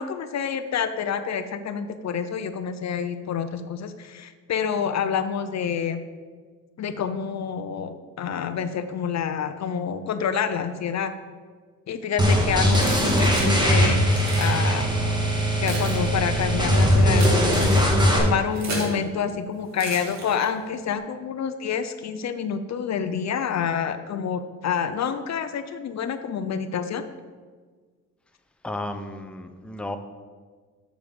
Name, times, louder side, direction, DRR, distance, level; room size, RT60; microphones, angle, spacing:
voice 1, 0.0-6.0 6.8-11.1 11.9-14.1 14.4-14.9 15.6-27.0, left 7 dB, 55° left, 10 dB, 0.6 m, -28 dB
sound 1, 12.2-18.2, equal, 15° right, 2.1 m, -20 dB
Keys jangling, 12.7-13.6 14.1-14.6 15.3-19.0 19.7-20.7, right 2 dB, 55° right, 2.5 m, -35 dB
voice 2, 28.6-30.0, left 1 dB, 5° left, 7 dB, 0.7 m, -33 dB
6.9 x 6.1 x 6.9 m, 1.5 s
cardioid pair, 90°, 33 cm